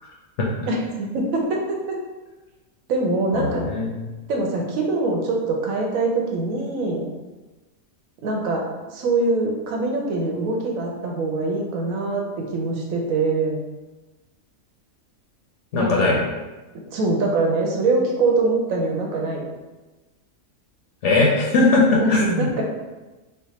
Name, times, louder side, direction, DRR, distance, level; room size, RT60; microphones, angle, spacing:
voice 1, 0.7-1.6 1.9-2.0 2.9-3.6 4.3-7.0 8.2-8.6 8.9-13.6 15.8-16.2 16.9-19.5 22.0-22.6, right 3 dB, 85° right, 0 dB, 1.1 m, -23 dB
voice 2, 3.3-4.0 15.7-16.2 21.0-22.5, left 2 dB, 70° left, -2 dB, 0.8 m, -19 dB
3.3 x 2.0 x 4.0 m, 1.1 s
omnidirectional pair, 1.4 m